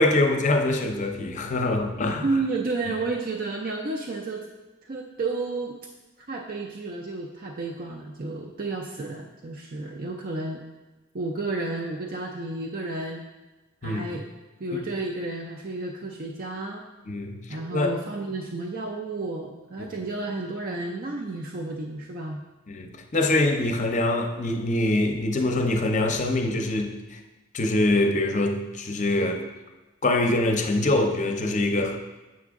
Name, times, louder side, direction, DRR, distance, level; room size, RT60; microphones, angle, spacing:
voice 1, 0.0-2.2 13.8-14.1 17.1-17.4 17.7-18.0 19.8-19.9 22.7-27.2 27.5-29.4 30.0-32.0, left 2 dB, 35° left, 5 dB, 0.6 m, -24 dB
voice 2, 2.2-4.5 4.8-5.8 6.3-10.6 11.1-13.2 13.8-14.3 14.6-16.8 17.5-22.4, right 3 dB, 45° right, 1 dB, 0.4 m, -31 dB
7.4 x 6.0 x 3.6 m, 1.1 s
head